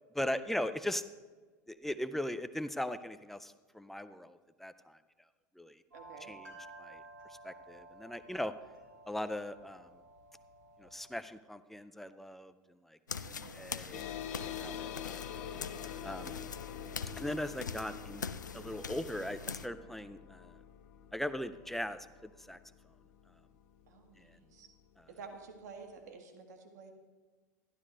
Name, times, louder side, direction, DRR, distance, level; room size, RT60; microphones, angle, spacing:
voice 1, 0.1-1.0 1.7-5.0 5.6-5.8 6.3-7.0 7.4-8.5 9.1-10.0 10.8-14.1 14.6-15.3 16.0-16.3 17.2-18.2 18.5-20.5 21.1-22.6 24.2-24.3 25.0-25.1, left 1 dB, 5° left, 12 dB, 0.5 m, -39 dB
voice 2, 5.9-6.4 13.2-13.7 13.9-14.1 23.9-24.7 25.1-26.9, right 4 dB, 65° right, 4 dB, 1.4 m, -51 dB
sound 1, 5.9-11.2, right 2 dB, 90° right, 3.1 m, -54 dB
sound 2, 13.1-19.7, left 6 dB, 85° left, 0.4 m, -43 dB
sound 3, 13.9-24.8, left 8 dB, 60° left, 0.7 m, -46 dB
12.0 x 11.5 x 3.1 m, 1.4 s
figure-of-eight pair, 80°, 10 cm